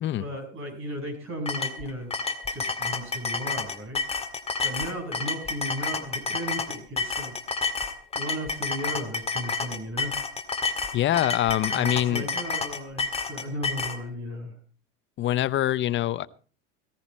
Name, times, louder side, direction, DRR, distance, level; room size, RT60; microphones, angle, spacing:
voice 1, 0.2-2.1 2.5-4.0 4.6-7.3 8.1-10.2 10.9-11.0 11.7-14.6, equal, 35° right, 3 dB, 6.7 m, -35 dB
sound 1, 1.5-14.0, left 4 dB, 20° left, 1.9 m, -30 dB
voice 2, 10.9-12.3 15.2-16.3, left 13 dB, 35° left, 15 dB, 0.8 m, -24 dB
16.5 x 15.0 x 4.3 m, 0.38 s
supercardioid pair, 120°, 34 cm